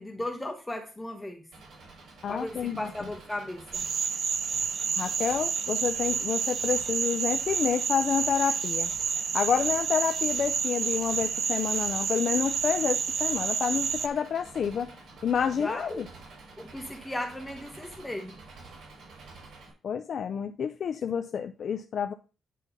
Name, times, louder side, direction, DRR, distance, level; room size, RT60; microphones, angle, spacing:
voice 1, 0.0-1.4 2.3-3.8 15.6-16.0 16.6-18.4, left 1 dB, 10° left, 4 dB, 1.2 m, -36 dB
Engine, 1.5-19.7, right 3 dB, 70° right, 4.9 m, -49 dB
voice 2, 2.2-2.9 5.0-8.9 9.3-14.9 15.2-16.0 19.8-22.1, left 7 dB, 60° left, 7 dB, 0.6 m, -29 dB
sound 1, 3.7-14.1, right 6 dB, 55° right, 0.7 m, -29 dB
10.0 x 3.8 x 5.5 m, 0.33 s
cardioid pair, 95°, 0 cm